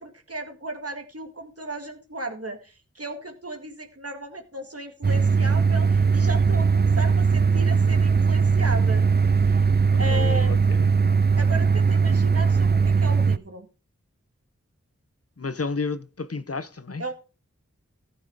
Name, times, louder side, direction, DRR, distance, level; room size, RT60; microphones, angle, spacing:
voice 1, 0.0-9.0 10.0-10.5 11.4-13.7 17.0-17.1, right 1 dB, 55° right, 2.2 m, -35 dB
sound 1, 5.0-13.4, right 5 dB, 35° right, 0.5 m, -20 dB
voice 2, 10.0-10.9 15.4-17.0, left 4 dB, 55° left, 0.9 m, -32 dB
14.5 x 6.3 x 4.9 m
wide cardioid pair, 40°, 29 cm